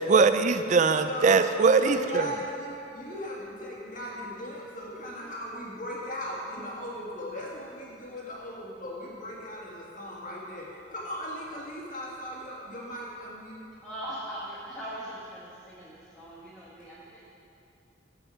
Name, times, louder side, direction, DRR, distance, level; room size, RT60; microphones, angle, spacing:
voice 1, 0.0-2.3, right 4 dB, 40° right, 10 dB, 0.3 m, -21 dB
voice 2, 1.8-13.6, equal, 40° left, -4 dB, 1.9 m, -38 dB
voice 3, 13.8-17.2, right 1 dB, 5° left, -8 dB, 1.2 m, -40 dB
14.5 x 5.2 x 5.0 m, 2.8 s
head